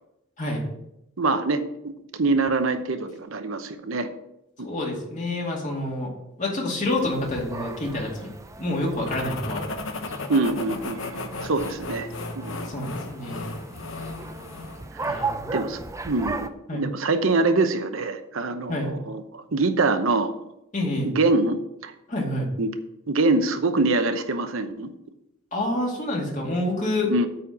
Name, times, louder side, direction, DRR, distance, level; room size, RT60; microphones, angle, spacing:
voice 1, 1.2-1.6 2.1-4.1 4.6-4.7 10.3-12.1 12.4-12.7 15.0-15.1 15.5-20.3 21.0-21.9 22.6-22.7 23.1-24.9 27.1-27.3, right 3 dB, 80° right, 8 dB, 0.9 m, -24 dB
voice 2, 4.6-6.1 6.4-8.3 8.6-9.6 12.6-13.5 15.0-15.6 16.7-16.8 18.7-18.9 20.7-21.1 22.1-22.5 25.5-27.1, left 1 dB, 40° left, -1 dB, 2.3 m, -28 dB
sound 1, 6.8-16.5, right 3 dB, 15° right, 0.4 m, -37 dB
sound 2, 9.1-14.9, left 3 dB, 70° left, 1.0 m, -35 dB
8.7 x 4.3 x 7.3 m, 0.83 s
head